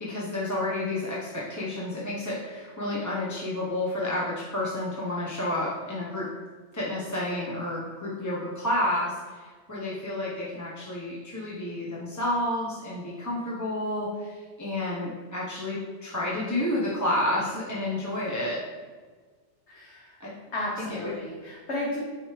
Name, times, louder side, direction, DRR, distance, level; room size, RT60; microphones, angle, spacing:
voice 1, 0.0-6.3 6.7-18.6 20.2-20.3 20.8-21.1, left 1 dB, 15° left, -7 dB, 1.1 m, -30 dB
voice 2, 19.7-20.2 20.5-22.0, left 1 dB, 75° left, -5 dB, 1.6 m, -33 dB
9.6 x 4.9 x 3.3 m, 1.5 s
omnidirectional pair, 1.2 m